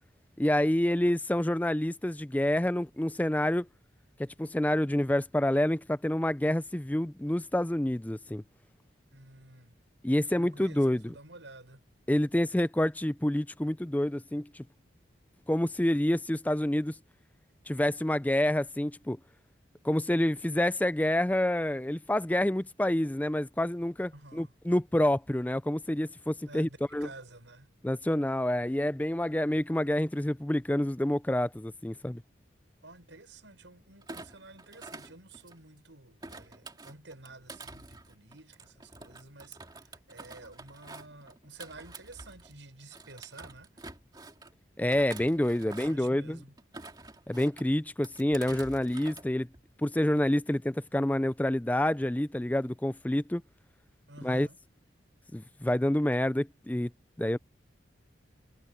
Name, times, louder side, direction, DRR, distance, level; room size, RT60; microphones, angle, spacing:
voice 1, 0.4-3.7 4.2-8.4 10.0-11.1 12.1-14.7 15.5-16.9 17.7-19.2 19.8-27.1 27.8-32.2 44.8-46.4 47.3-49.5 49.8-53.4 54.2-54.5 55.3-56.9 57.2-57.4, left 1 dB, 10° left, 0.4 m, -28 dB
voice 2, 9.1-9.7 10.2-11.9 24.1-24.5 26.4-27.7 32.8-43.8 45.6-46.5 54.1-54.6, right 2 dB, 85° right, 6.7 m, -51 dB
Thump thud, 34.0-35.8 36.2-42.6 42.9-44.5 44.9-46.1 46.6-47.6 48.0-49.3 49.5-49.9, right 3 dB, 20° right, 2.7 m, -48 dB
head